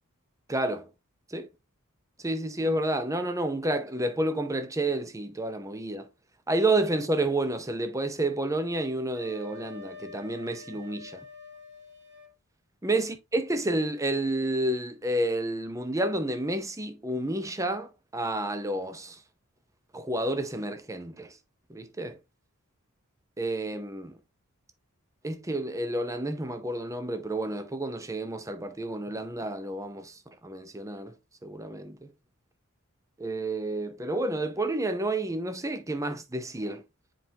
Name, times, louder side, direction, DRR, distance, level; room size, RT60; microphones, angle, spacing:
voice 1, 0.5-0.9 1.3-1.5 2.2-6.1 6.5-11.2 12.8-19.2 19.9-21.3 21.7-22.2 23.4-24.1 25.2-30.1 30.4-31.1 31.4-32.1 33.2-36.8, right 1 dB, 15° right, 0.7 m, -30 dB
Wind instrument woodwind instrument, 9.1-12.3, left 4 dB, 55° right, 1.6 m, -46 dB
7.8 x 4.5 x 2.8 m
head